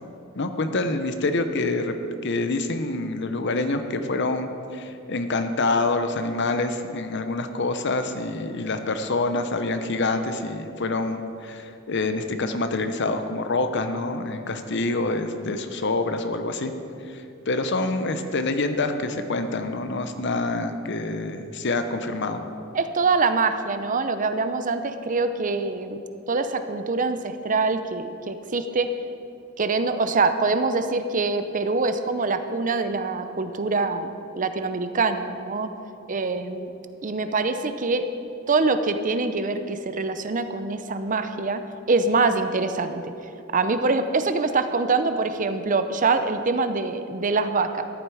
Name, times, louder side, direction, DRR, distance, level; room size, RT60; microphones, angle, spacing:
voice 1, 0.4-2.0 2.2-16.7 17.1-22.4, left 2 dB, 55° left, 8 dB, 0.8 m, -26 dB
voice 2, 22.7-26.0 26.3-28.9 29.6-34.1 34.4-35.7 36.1-36.7 37.0-38.1 38.5-41.6 41.9-43.0 43.5-47.8, right 3 dB, 40° right, 9 dB, 0.6 m, -24 dB
13.5 x 11.0 x 4.8 m, 2.6 s
head